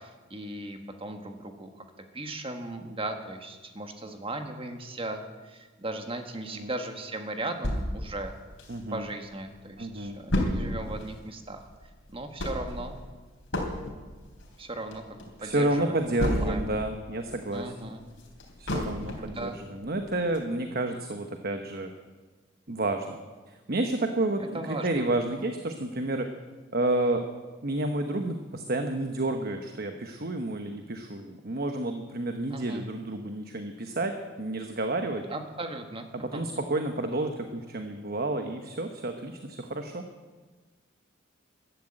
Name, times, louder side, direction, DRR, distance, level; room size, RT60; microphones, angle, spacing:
voice 1, 0.0-1.7 2.1-8.3 8.9-11.7 12.1-13.0 14.6-16.0 16.2-16.7 17.5-18.0 19.2-19.6 24.5-25.0 32.5-32.9 35.3-36.1 36.3-36.4, right 2 dB, 30° right, 5 dB, 1.5 m, -37 dB
sound 1, 7.6-9.2 9.6-9.7 9.8-16.9 17.2-19.4 19.8-19.9 20.3-20.4, left 1 dB, 65° left, 3.6 m, -32 dB
voice 2, 8.7-9.1 9.8-10.2 15.4-17.7 18.6-21.9 22.7-23.2 23.5-26.3 26.7-27.2 27.6-34.1 34.4-35.2 36.1-40.0, right 2 dB, 50° right, 5 dB, 1.1 m, -30 dB
14.5 x 11.5 x 8.8 m, 1.3 s
head